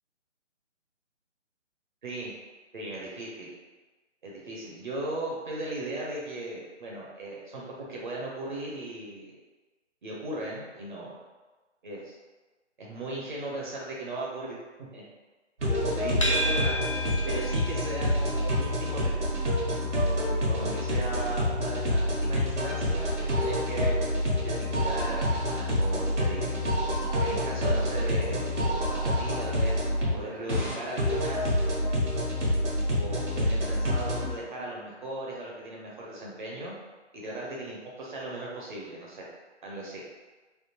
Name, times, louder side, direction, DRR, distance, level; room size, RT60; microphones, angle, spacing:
voice 1, 2.0-2.3 2.7-3.5 4.2-9.3 10.0-11.2 11.8-12.2 12.8-15.0 15.6-16.8 17.2-19.6 20.5-23.9 24.4-26.6 27.2-31.6 32.9-36.7 37.1-39.3 39.6-40.0, right 1 dB, 40° right, -4 dB, 0.7 m, -37 dB
sound 1, 15.6-34.3, equal, 70° right, 1.4 m, -27 dB
sound 2, 16.2-33.4, left 1 dB, 25° left, 0.4 m, -40 dB
3.5 x 2.5 x 2.9 m, 1.2 s
figure-of-eight pair, 145°, 36 cm